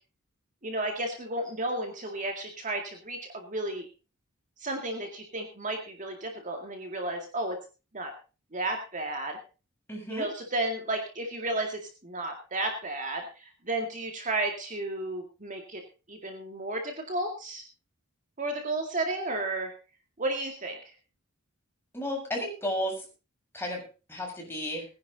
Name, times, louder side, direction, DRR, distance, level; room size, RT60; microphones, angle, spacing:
voice 1, 0.6-3.9 4.6-7.6 7.9-8.1 8.5-9.4 10.1-15.8 16.1-17.6 18.4-19.7 20.2-20.8, right 2 dB, 40° right, 3 dB, 2.1 m, -33 dB
voice 2, 9.9-10.3 21.9-23.1 23.5-23.8 24.1-24.9, equal, 10° left, -1 dB, 7.1 m, -33 dB
20.0 x 10.5 x 4.0 m, 0.34 s
head